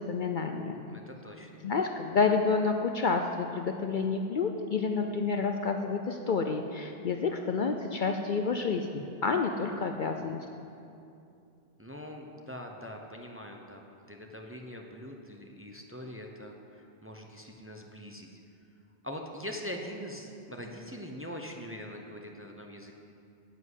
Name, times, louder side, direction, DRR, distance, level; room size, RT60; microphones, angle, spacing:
voice 1, 0.0-0.9 1.6-10.5, left 4 dB, 55° left, 5 dB, 0.7 m, -29 dB
voice 2, 0.7-1.5 9.9-10.3 11.8-13.8 14.1-18.4 19.0-22.9, equal, 15° right, 2 dB, 0.7 m, -43 dB
10.0 x 7.6 x 8.3 m, 2.6 s
omnidirectional pair, 1.1 m